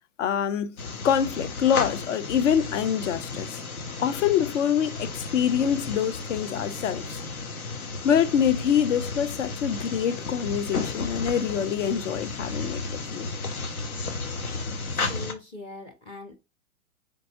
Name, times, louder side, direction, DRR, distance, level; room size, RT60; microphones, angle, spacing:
voice 1, 0.2-0.7 1.0-3.6 4.0-7.2 8.0-13.3, left 8 dB, 60° left, 0.6 m, -25 dB
sound 1, 0.8-15.3, left 3 dB, 85° left, 0.9 m, -33 dB
voice 2, 15.0-16.4, left 2 dB, 15° left, 0.4 m, -41 dB
4.0 x 3.6 x 2.7 m
hypercardioid pair, 115°, 42 cm